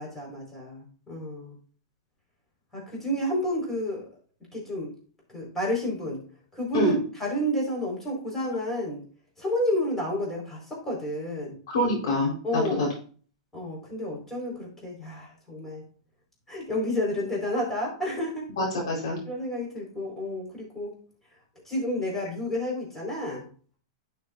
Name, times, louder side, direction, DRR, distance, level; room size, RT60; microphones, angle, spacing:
voice 1, 0.0-1.5 2.7-4.1 4.5-4.9 5.3-6.2 6.5-6.9 7.2-9.0 9.4-11.6 12.4-12.9 13.5-15.8 16.5-18.5 19.3-21.0 21.6-23.4, left 1 dB, 10° left, -3 dB, 4.7 m, -30 dB
voice 2, 11.7-12.9 18.6-19.2, left 1 dB, 70° left, -2 dB, 4.3 m, -25 dB
11.5 x 6.8 x 2.6 m, 0.42 s
hypercardioid pair, 115°, 3 cm